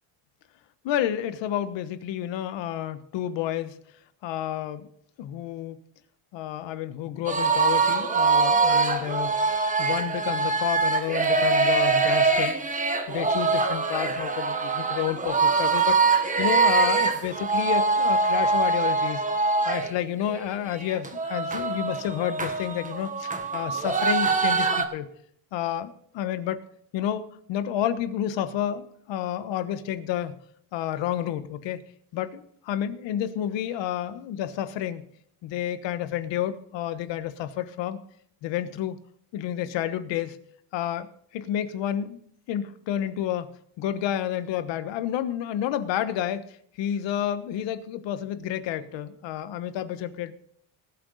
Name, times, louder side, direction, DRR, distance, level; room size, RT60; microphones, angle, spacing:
voice 1, 0.8-3.8 4.2-4.9 5.2-5.8 6.3-9.4 9.8-12.6 13.1-19.2 19.6-25.1 25.5-26.6 26.9-30.4 30.7-31.8 32.1-35.1 35.4-38.0 38.4-39.0 39.3-40.4 40.7-41.1 41.3-42.2 42.5-43.5 43.8-50.3, left 11 dB, 75° left, 12 dB, 1.3 m, -30 dB
sound 1, 7.3-19.9 20.3-20.4 20.7-24.8, right 4 dB, 15° right, 1.3 m, -23 dB
19.5 x 7.8 x 4.1 m, 0.65 s
cardioid pair, 140°, 45 cm